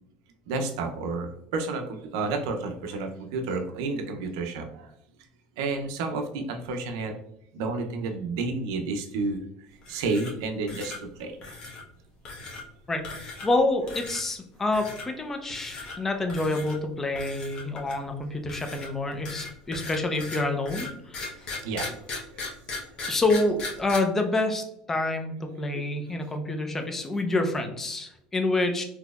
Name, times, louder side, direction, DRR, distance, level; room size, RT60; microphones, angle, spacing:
voice 1, 0.5-4.9 5.6-7.2 7.5-9.4 9.9-11.6 21.5-22.1 22.3-22.5 25.7-25.9, right 3 dB, 85° right, 5 dB, 0.6 m, -31 dB
sound 1, 9.8-10.4 10.7-11.0 11.4-11.8 12.3-12.6 13.0-13.6 13.9-14.2 14.7-15.1 15.5-16.0 16.3-16.8 17.2-18.1 18.5-24.0, left 3 dB, 45° left, 1.0 m, -37 dB
voice 2, 12.9-21.3 23.1-28.8, left 2 dB, 15° left, 5 dB, 0.5 m, -27 dB
4.0 x 2.8 x 2.3 m, 0.76 s
supercardioid pair, 120°, 2 cm